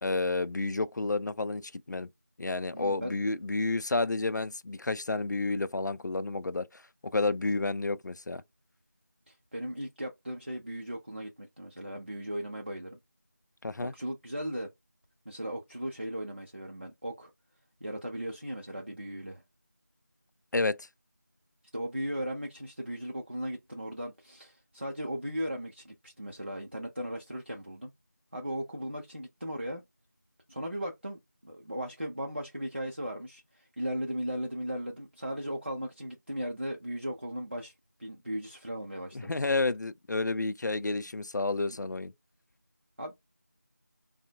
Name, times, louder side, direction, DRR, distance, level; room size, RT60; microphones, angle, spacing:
voice 1, 0.0-2.1 2.4-6.8 7.1-8.4 13.6-13.9 20.5-20.9 39.1-42.1, left 3 dB, 80° left, 0.4 m, -30 dB
voice 2, 2.7-3.1 9.3-13.0 13.8-14.7 15.3-17.3 17.8-19.4 21.7-27.9 28.3-29.8 30.5-37.7 38.0-39.3 41.7-41.8 43.0-43.1, equal, 40° right, 0.5 m, -37 dB
3.5 x 2.0 x 2.7 m
figure-of-eight pair, 175°, 10 cm